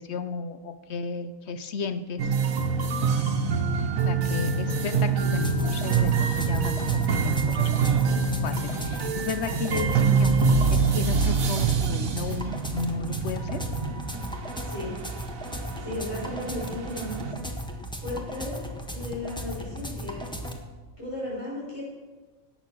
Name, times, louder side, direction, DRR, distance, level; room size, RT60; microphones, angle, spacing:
voice 1, 0.0-2.3 4.0-8.2 8.4-13.6, left 5 dB, 60° left, 11 dB, 1.0 m, -34 dB
sound 1, 2.2-17.3, right 5 dB, 85° right, 1.5 m, -26 dB
sound 2, 5.2-20.6, equal, 5° left, 1.1 m, -36 dB
sound 3, 10.2-13.0, right 6 dB, 40° right, 0.7 m, -29 dB
voice 2, 14.6-14.9 15.8-17.4 18.0-18.6 18.9-20.3 21.0-21.8, left 1 dB, 20° left, -7 dB, 5.2 m, -35 dB
17.5 x 6.9 x 6.2 m, 1.3 s
omnidirectional pair, 1.4 m